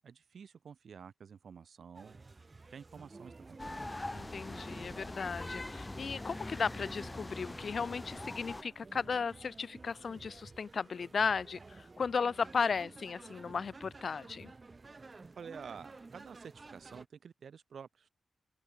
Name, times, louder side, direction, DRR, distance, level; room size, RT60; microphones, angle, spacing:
voice 1, 0.0-2.2 2.7-3.7 15.4-18.1, right 6 dB, 70° right, 1.7 m, -50 dB
sound 1, 1.9-17.1, right 3 dB, 35° right, 1.2 m, -53 dB
sound 2, 3.6-8.6, left 2 dB, 20° left, 1.5 m, -42 dB
voice 2, 4.1-14.5, left 5 dB, 60° left, 0.4 m, -35 dB
cardioid pair, 75°, 0 cm